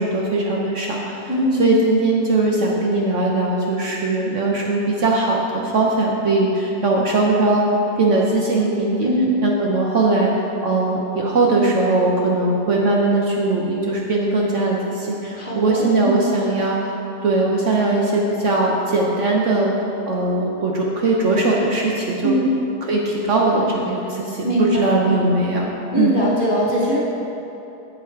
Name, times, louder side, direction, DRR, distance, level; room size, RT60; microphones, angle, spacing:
voice 1, 0.0-1.3 1.6-7.6 8.0-9.1 9.4-16.9 17.2-19.7 20.1-22.4 22.8-25.7 26.0-26.2, right 2 dB, 55° right, -2 dB, 1.0 m, -20 dB
voice 2, 1.3-1.6 9.0-9.4 15.4-16.2 22.2-22.5 24.4-25.3 25.9-27.0, equal, 35° left, -5 dB, 1.2 m, -21 dB
8.1 x 7.7 x 4.6 m, 3.0 s
omnidirectional pair, 1.7 m